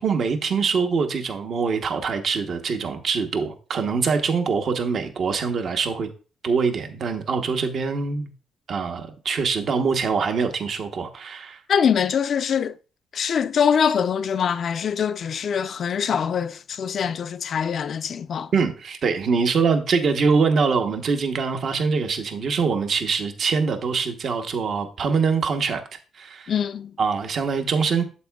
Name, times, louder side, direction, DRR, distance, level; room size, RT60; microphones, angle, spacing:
voice 1, 0.0-6.1 6.4-8.3 8.7-11.6 18.5-25.8 26.1-26.5 27.0-28.0, right 5 dB, 55° right, 0.9 m, -24 dB
voice 2, 11.7-12.7 13.1-18.5 26.5-26.9, left 7 dB, 55° left, 0.4 m, -23 dB
8.4 x 7.2 x 2.3 m
cardioid pair, 90°, 0 cm